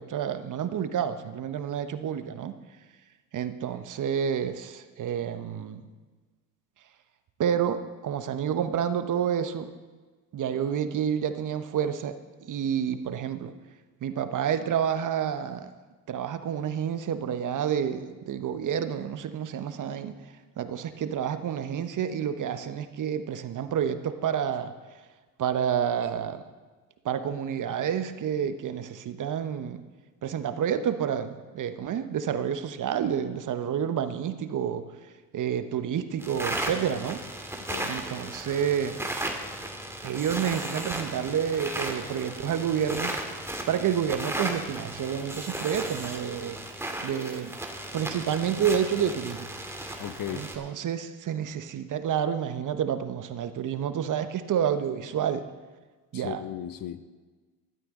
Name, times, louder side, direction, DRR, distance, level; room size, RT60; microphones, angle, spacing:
voice 1, 0.0-2.5 3.3-5.8 7.4-9.7 10.3-13.5 14.0-15.7 16.1-20.1 20.6-24.7 25.4-26.4 27.0-29.8 30.2-34.8 35.3-37.2 37.8-39.0 40.0-43.1 43.7-46.6 47.0-47.5 47.9-49.4 50.3-55.4 56.1-56.5, right 8 dB, 40° right, 10 dB, 1.1 m, -29 dB
sound 1, 36.2-50.6, right 1 dB, 5° right, 2.1 m, -35 dB
voice 2, 50.0-50.5 56.1-57.0, left 11 dB, 45° left, 13 dB, 0.8 m, -36 dB
15.0 x 12.5 x 3.8 m, 1.3 s
hypercardioid pair, 70°, 46 cm